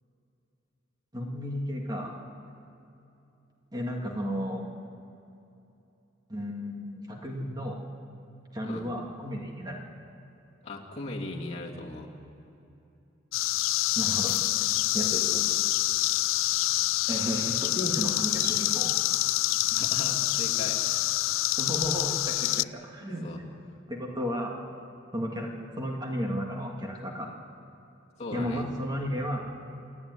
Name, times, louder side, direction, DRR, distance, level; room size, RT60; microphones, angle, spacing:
voice 1, 1.1-2.1 3.7-4.6 6.3-7.8 8.5-9.9 14.0-14.7 14.9-15.6 17.1-18.9 21.6-23.5 23.9-24.6 25.1-27.3 28.3-29.5, equal, 20° right, 0 dB, 2.1 m, -33 dB
voice 2, 10.6-12.1 19.7-21.1 23.2-23.4 28.2-28.6, left 2 dB, 35° left, -3 dB, 2.8 m, -38 dB
sound 1, 13.3-22.6, left 17 dB, 85° left, 0.4 m, -26 dB
28.0 x 10.5 x 9.5 m, 2.8 s
head